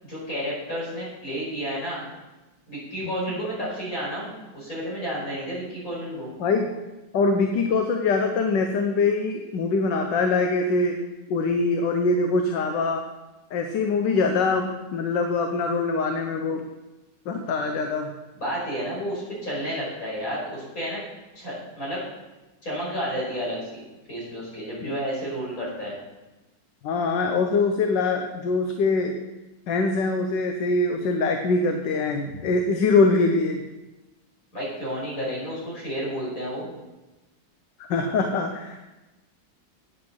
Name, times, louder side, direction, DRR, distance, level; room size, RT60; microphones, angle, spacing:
voice 1, 0.0-2.1 2.7-6.3 18.3-21.0 21.3-22.0 22.6-23.8 24.1-26.0 32.3-32.4 34.5-36.7, equal, 50° left, -6 dB, 6.0 m, -31 dB
voice 2, 6.4-6.7 7.1-11.0 11.3-13.0 13.5-16.6 17.3-18.1 24.8-24.9 26.8-29.2 29.7-33.6 37.8-38.9, left 3 dB, 75° left, 4 dB, 1.6 m, -23 dB
9.0 x 8.5 x 7.9 m, 1.1 s
omnidirectional pair, 2.0 m